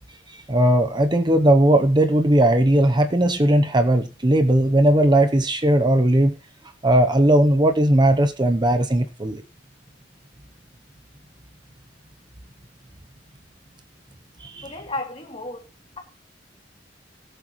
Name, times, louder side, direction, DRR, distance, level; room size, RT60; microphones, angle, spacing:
voice 1, 0.5-6.4 6.8-9.4 14.4-14.7, right 1 dB, 25° right, 0.9 m, -18 dB
voice 2, 14.6-15.6, left 2 dB, 35° left, 3.0 m, -32 dB
18.0 x 7.9 x 3.2 m
head